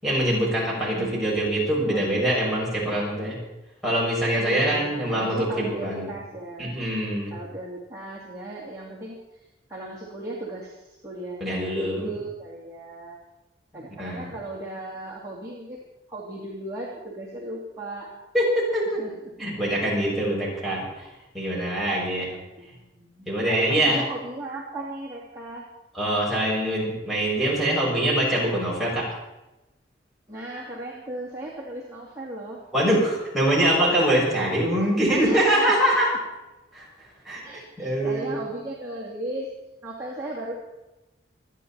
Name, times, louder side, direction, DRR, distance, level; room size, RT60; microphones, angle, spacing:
voice 1, 0.0-3.4 3.8-6.1 6.6-7.3 11.4-12.1 14.0-14.3 18.3-19.0 19.4-21.1 21.3-22.3 23.3-24.0 25.9-29.1 32.7-36.1 36.7-36.9 37.2-38.3, right 1 dB, ahead, -7 dB, 6.6 m, -24 dB
voice 2, 1.9-2.2 4.4-6.8 7.3-13.2 13.7-15.8 16.1-18.1 19.0-19.1 22.2-25.7 30.3-32.6 35.1-36.2 37.4-39.5 39.8-40.5, right 2 dB, 20° right, -7 dB, 2.8 m, -36 dB
27.5 x 10.5 x 4.3 m, 1.0 s
head